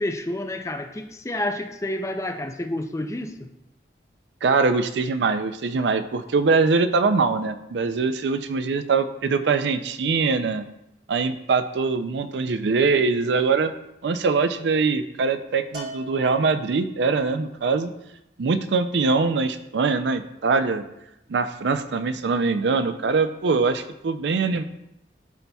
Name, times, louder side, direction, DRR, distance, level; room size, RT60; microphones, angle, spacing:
voice 1, 0.0-3.5, left 1 dB, 15° left, 5 dB, 0.4 m, -29 dB
voice 2, 4.4-10.7 11.1-13.7 14.0-17.9 18.4-20.8 21.3-24.6, right 4 dB, 85° right, 10 dB, 0.4 m, -23 dB
Bell, 15.7-17.1, right 1 dB, 70° right, 1.6 m, -40 dB
11.5 x 4.1 x 2.3 m, 0.86 s
head